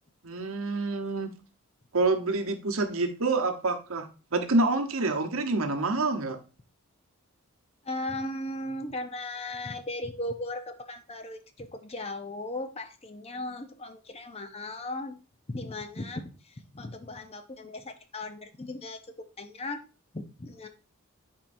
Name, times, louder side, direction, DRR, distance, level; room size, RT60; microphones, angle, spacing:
voice 1, 0.2-1.3 1.9-4.1 4.3-6.4, right 3 dB, 70° right, 6 dB, 1.0 m, -27 dB
voice 2, 7.8-15.2 15.5-19.8 20.1-20.7, left 2 dB, 30° left, 8 dB, 0.6 m, -37 dB
10.5 x 4.5 x 2.6 m, 0.34 s
head